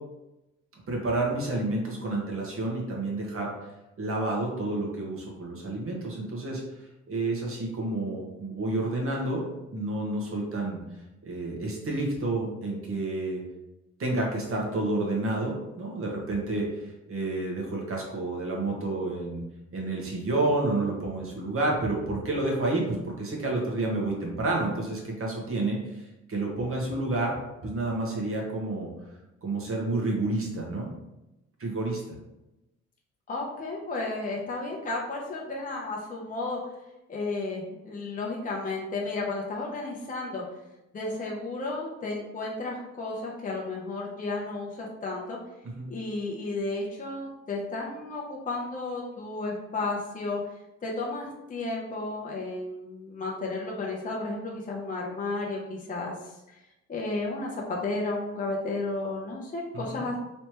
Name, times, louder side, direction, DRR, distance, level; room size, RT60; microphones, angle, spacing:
voice 1, 0.7-3.5 4.0-6.6 7.1-9.4 9.7-10.8 11.2-13.4 14.0-19.4 19.7-27.4 27.6-28.9 29.4-30.9 31.6-32.0 45.6-45.9 59.9-60.0, right 2 dB, 45° right, -1 dB, 1.2 m, -29 dB
voice 2, 33.3-36.6 37.1-40.4 40.9-45.4 45.9-50.4 50.8-56.6 56.9-60.2, left 3 dB, 25° left, -2 dB, 0.7 m, -33 dB
3.3 x 3.0 x 3.0 m, 0.96 s
cardioid pair, 90°, 30 cm